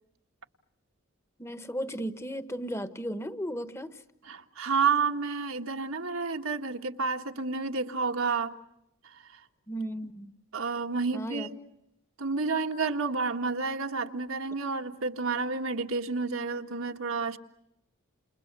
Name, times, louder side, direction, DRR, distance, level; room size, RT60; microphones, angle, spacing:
voice 1, 1.4-4.0 9.7-10.3 11.1-11.5, equal, 10° left, 1.3 m, -35 dB
voice 2, 4.2-8.5 9.0-9.4 10.5-11.6 12.2-17.4, right 4 dB, 75° right, 1.8 m, -30 dB
30.0 x 29.5 x 6.8 m
head